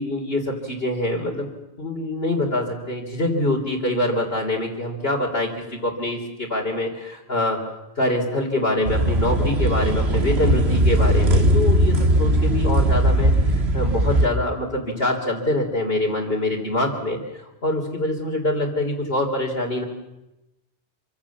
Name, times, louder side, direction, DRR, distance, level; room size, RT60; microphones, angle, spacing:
voice 1, 0.0-1.5 1.8-7.6 8.0-19.8, left 1 dB, 60° left, -3 dB, 3.7 m, -25 dB
sound 1, 8.8-14.3, right 1 dB, 70° right, 2.2 m, -19 dB
26.5 x 25.0 x 7.3 m, 0.96 s
omnidirectional pair, 1.1 m